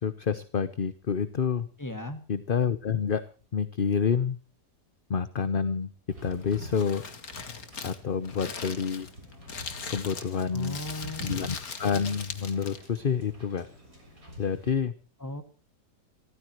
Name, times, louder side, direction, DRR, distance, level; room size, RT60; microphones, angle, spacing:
voice 1, 0.0-1.7 2.3-3.2 3.5-4.4 5.1-5.9 6.2-7.0 7.8-9.1 9.9-10.8 11.2-13.7 14.4-14.9, left 6 dB, 40° left, 12 dB, 0.9 m, -28 dB
voice 2, 1.8-2.2 10.5-11.4 15.2-15.4, left 1 dB, 10° left, 8 dB, 2.0 m, -36 dB
Wind / Boat Water vehicle, 6.1-14.7, left 1 dB, 50° right, 7.5 m, -46 dB
Crumpling crinkling, 6.2-13.0, left 5 dB, 55° left, 2.2 m, -40 dB
27.5 x 14.5 x 3.1 m, 0.37 s
omnidirectional pair, 1.8 m